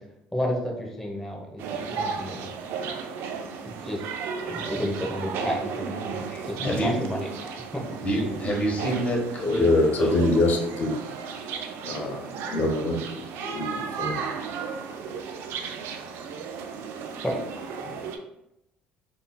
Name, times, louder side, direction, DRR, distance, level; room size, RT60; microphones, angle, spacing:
voice 1, 0.3-1.6 1.9-2.5 3.8-4.0 4.5-7.8 17.2-17.4, equal, 5° left, -1 dB, 0.8 m, -31 dB
sound 1, 1.6-18.2, right 6 dB, 75° right, 0.4 m, -34 dB
voice 2, 6.3-7.0 8.0-9.6 10.0-10.2 17.8-18.0, equal, 35° left, -2 dB, 1.1 m, -27 dB
voice 3, 9.4-11.0 11.8-12.2 12.5-14.2, left 2 dB, 50° left, 2 dB, 0.6 m, -24 dB
3.7 x 2.5 x 2.2 m, 0.84 s
supercardioid pair, 85°, 4 cm